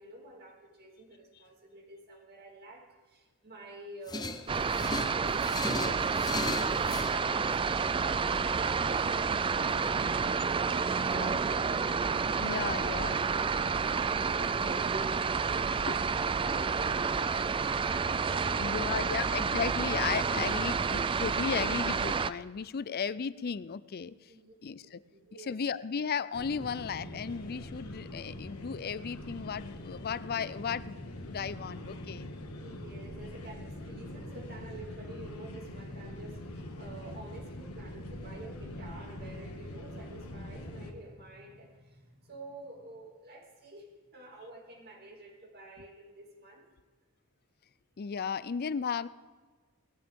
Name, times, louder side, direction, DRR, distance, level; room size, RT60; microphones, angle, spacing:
voice 1, 0.0-11.9 12.4-19.3 24.3-24.5 24.8-25.6 32.6-46.7, right 1 dB, 45° right, 1 dB, 2.6 m, -49 dB
sound 1, 4.1-7.2, left 2 dB, 20° left, 0.7 m, -36 dB
sound 2, 4.5-22.3, right 5 dB, 25° right, 0.3 m, -29 dB
voice 2, 11.1-11.4 12.4-13.2 15.9-16.0 18.6-24.1 24.6-25.0 25.3-32.3 48.0-49.1, left 6 dB, 45° left, 17 dB, 0.4 m, -35 dB
sound 3, 26.3-40.9, left 1 dB, 75° left, 1.7 m, -43 dB
19.0 x 14.5 x 3.7 m, 1.4 s
head